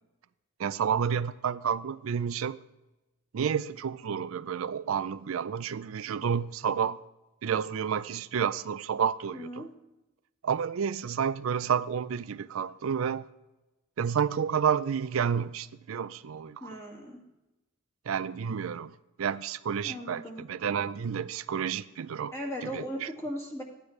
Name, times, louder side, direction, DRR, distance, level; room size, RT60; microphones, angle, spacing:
voice 1, 0.6-2.6 3.3-7.0 7.4-9.6 10.4-13.3 14.0-16.6 18.1-22.3 22.6-23.1, right 7 dB, 80° right, 0.4 m, -30 dB
voice 2, 9.3-9.7 16.6-17.2 19.8-20.5 22.3-23.6, equal, 15° left, 1.9 m, -37 dB
13.5 x 9.7 x 3.2 m
head